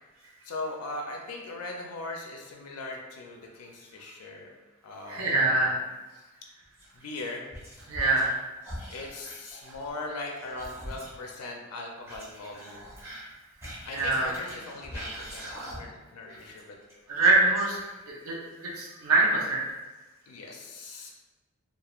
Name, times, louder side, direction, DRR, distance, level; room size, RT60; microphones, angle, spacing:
voice 1, 0.4-4.5 4.8-5.8 6.1-6.3 6.9-7.4 8.9-12.9 13.8-16.8 20.3-21.1, left 2 dB, 85° left, 1 dB, 0.4 m, -39 dB
voice 2, 5.1-5.8 7.9-8.3 13.9-14.3 17.1-17.8 18.1-19.6, right 2 dB, 75° right, -3 dB, 0.6 m, -24 dB
Whispering, 6.8-8.4 8.6-11.3 12.0-16.0 16.3-18.1, equal, 10° right, 0.5 m, -43 dB
2.3 x 2.1 x 2.9 m, 1.2 s
head